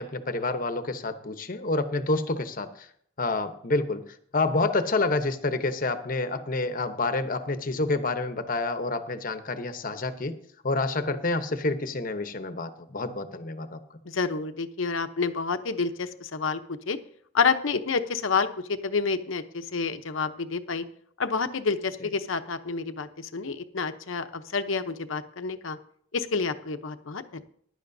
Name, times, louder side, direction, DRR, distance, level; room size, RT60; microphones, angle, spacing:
voice 1, 0.0-2.7 3.2-4.0 4.3-10.3 10.6-13.8, left 3 dB, 45° left, 9 dB, 0.9 m, -28 dB
voice 2, 14.1-17.0 17.3-20.8 21.2-25.8 26.1-27.4, left 5 dB, 85° left, 9 dB, 0.9 m, -29 dB
15.5 x 11.5 x 2.7 m, 0.63 s
head